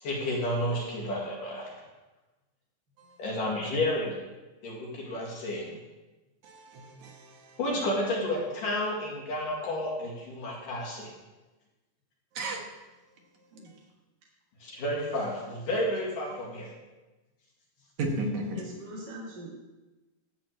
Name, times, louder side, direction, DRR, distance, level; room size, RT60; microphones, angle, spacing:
voice 1, 0.0-1.7 3.2-4.2 4.6-5.8 7.6-11.1 14.6-16.7, left 1 dB, 65° left, -3 dB, 3.6 m, -31 dB
voice 2, 6.4-7.5 12.4-12.6 18.0-18.6, right 1 dB, 60° right, 1 dB, 2.5 m, -33 dB
voice 3, 18.5-19.6, right 1 dB, 45° right, -4 dB, 1.5 m, -42 dB
12.0 x 4.3 x 7.7 m, 1.1 s
omnidirectional pair, 4.0 m